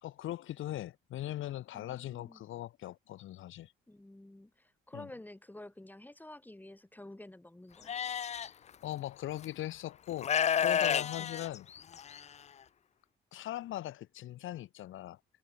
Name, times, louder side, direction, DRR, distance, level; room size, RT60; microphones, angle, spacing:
voice 1, 0.0-3.7 4.9-5.1 8.8-10.3 10.6-11.7 13.3-15.2, left 14 dB, 80° left, 2.4 m, -40 dB
voice 2, 1.7-2.4 3.9-7.9 11.0-11.3, left 1 dB, 10° left, 3.4 m, -51 dB
Livestock farm animals working animals, 7.9-8.5 9.4-9.5 10.2-12.2, left 8 dB, 35° left, 0.4 m, -30 dB
cardioid pair, 90°, 20 cm